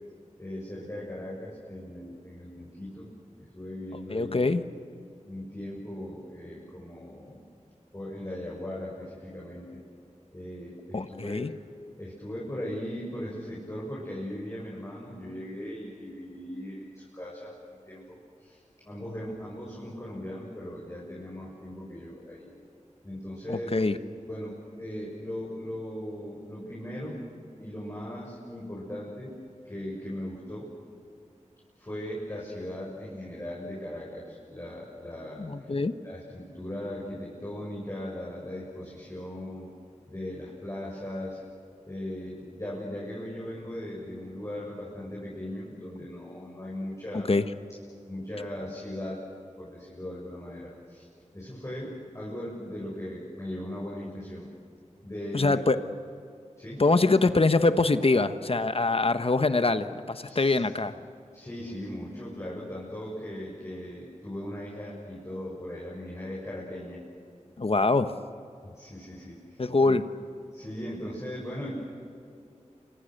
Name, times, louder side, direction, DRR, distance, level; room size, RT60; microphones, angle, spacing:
voice 1, 0.4-3.1 3.4-4.4 5.2-7.4 7.9-9.8 10.3-11.5 12.0-17.6 17.8-18.6 18.8-22.5 23.0-23.8 24.3-27.2 27.6-29.4 29.7-30.7 31.8-35.7 36.0-39.7 40.1-41.4 41.9-47.3 48.1-49.2 49.6-51.0 51.3-54.5 55.0-55.6 56.6-56.9 60.2-60.6 60.9-61.0 61.3-67.0 68.6-69.9 70.5-71.7, left 1 dB, 25° left, -6 dB, 7.5 m, -38 dB
voice 2, 4.1-4.6 10.9-11.5 23.5-24.0 35.4-35.9 47.1-47.4 55.3-55.8 56.8-60.9 67.6-68.1 69.6-70.0, left 3 dB, 50° left, 10 dB, 1.2 m, -24 dB
29.5 x 26.0 x 6.7 m, 2.5 s
wide cardioid pair, 65°, 13 cm